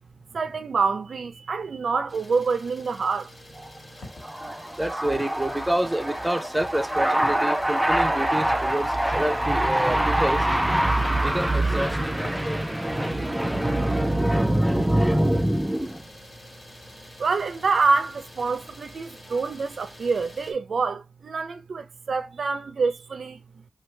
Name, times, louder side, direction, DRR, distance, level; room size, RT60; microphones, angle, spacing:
voice 1, 0.3-3.3 17.2-23.6, right 4 dB, 75° right, 0.4 m, -26 dB
Idling, 2.1-20.5, left 1 dB, 30° left, 1.2 m, -47 dB
sound 1, 3.7-4.2 4.7-4.9 5.2-5.4 5.8-6.1 6.5-6.8 7.2-7.5 7.7-8.6 9.6-10.1 10.5-10.6 10.9-11.1 11.8-11.9 12.2-12.4 12.7-13.1, left 2 dB, 75° left, 1.6 m, -43 dB
voice 2, 4.0-16.0, right 1 dB, 10° right, 0.4 m, -23 dB
3.1 x 2.3 x 3.2 m
wide cardioid pair, 120°, 0 cm